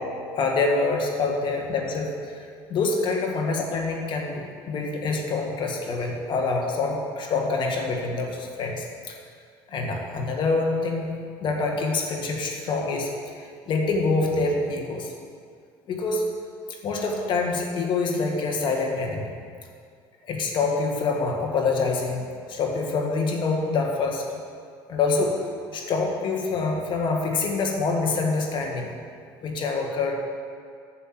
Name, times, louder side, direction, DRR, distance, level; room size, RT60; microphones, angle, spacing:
voice 1, 0.3-9.1 9.7-15.1 15.9-16.3 16.8-19.3 20.3-24.2 24.9-25.4 25.7-28.9 29.4-30.1, left 3 dB, 55° left, 1 dB, 1.8 m, -26 dB
9.0 x 6.7 x 6.1 m, 2.2 s
supercardioid pair, 85°, 10 cm